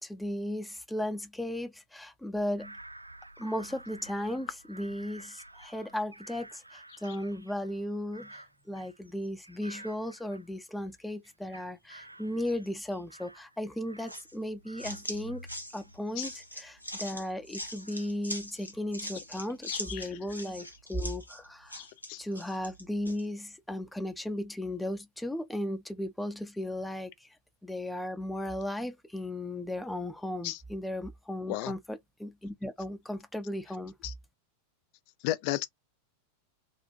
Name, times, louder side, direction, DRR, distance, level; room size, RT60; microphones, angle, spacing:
voice 1, 0.0-2.8 3.4-15.5 15.7-21.8 22.2-27.3 27.6-33.9, left 1 dB, 5° left, 0.7 m, -36 dB
Bird vocalization bird call bird song / Crow, 2.6-10.9 11.2-14.4 14.6-20.7 21.2-21.8, right 1 dB, 85° right, 1.0 m, -53 dB
sound 1, 14.1-23.2, left 1 dB, 85° left, 0.8 m, -42 dB
voice 2, 19.7-20.0 21.7-22.2 30.4-30.6 31.5-31.7 34.0-34.1 35.2-35.7, left 16 dB, 45° left, 0.4 m, -33 dB
3.8 x 2.6 x 2.5 m
figure-of-eight pair, 90°, 0 cm